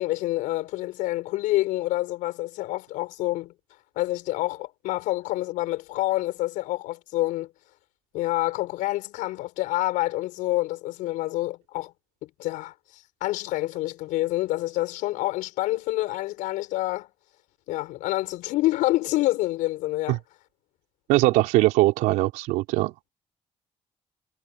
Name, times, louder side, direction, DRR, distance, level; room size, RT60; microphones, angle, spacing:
voice 1, 0.0-3.5 3.9-7.5 8.1-11.9 12.2-17.1 17.7-20.2, left 17 dB, 80° left, 6.4 m, -27 dB
voice 2, 21.1-22.9, right 18 dB, 85° right, 3.6 m, -21 dB
supercardioid pair, 55°, 13 cm